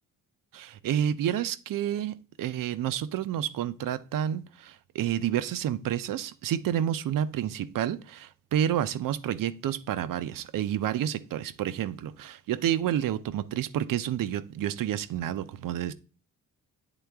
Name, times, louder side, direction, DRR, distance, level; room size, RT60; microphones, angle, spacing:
voice 1, 0.5-15.9, right 10 dB, 75° right, 0.6 m, -29 dB
9.1 x 3.8 x 3.5 m
cardioid pair, 115°, 33 cm